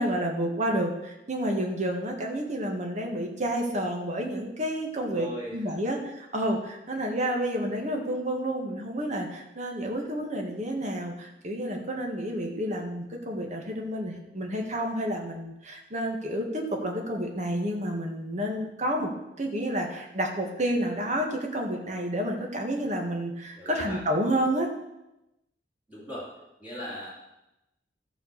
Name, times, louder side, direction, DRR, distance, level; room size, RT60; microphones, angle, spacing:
voice 1, 0.0-19.1 19.4-24.7, right 1 dB, 45° right, 1 dB, 1.8 m, -30 dB
voice 2, 5.1-5.9 23.5-24.0 25.9-26.3 26.6-27.1, left 1 dB, 10° right, -8 dB, 2.6 m, -38 dB
13.5 x 4.6 x 6.8 m, 0.93 s
head